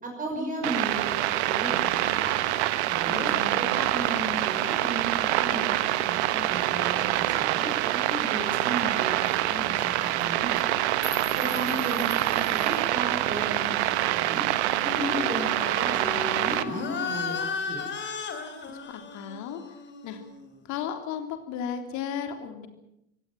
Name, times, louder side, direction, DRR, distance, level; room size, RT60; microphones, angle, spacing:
voice 1, 0.0-2.4 2.9-10.7 11.3-14.4 14.8-17.8, right 2 dB, 20° right, 1 dB, 5.8 m, -35 dB
sound 1, 0.6-16.6, right 14 dB, 55° right, 1.3 m, -26 dB
voice 2, 3.1-3.7 11.5-12.1 18.9-19.8 20.0-20.2 20.6-22.7, left 8 dB, 45° left, 6 dB, 3.5 m, -35 dB
sound 2, 8.1-8.2 8.5-8.6 8.8-9.0 9.2-9.4 10.0-10.2 10.6-12.9, left 2 dB, 10° left, 2.2 m, -43 dB
sound 3, 14.8-20.7, left 5 dB, 25° left, 3.5 m, -35 dB
26.0 x 17.0 x 7.8 m, 0.80 s
figure-of-eight pair, 75°, 40 cm